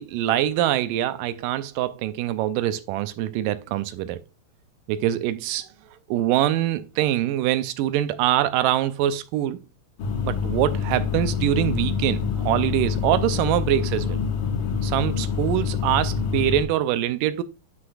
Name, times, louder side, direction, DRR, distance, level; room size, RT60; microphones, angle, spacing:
voice 1, 0.0-4.2 4.9-5.7 6.1-9.6 10.2-14.2 14.8-17.4, right 12 dB, 85° right, 2.1 m, -24 dB
sound 1, 10.0-16.6, left 6 dB, 75° left, 2.8 m, -26 dB
9.6 x 6.1 x 2.3 m
omnidirectional pair, 3.9 m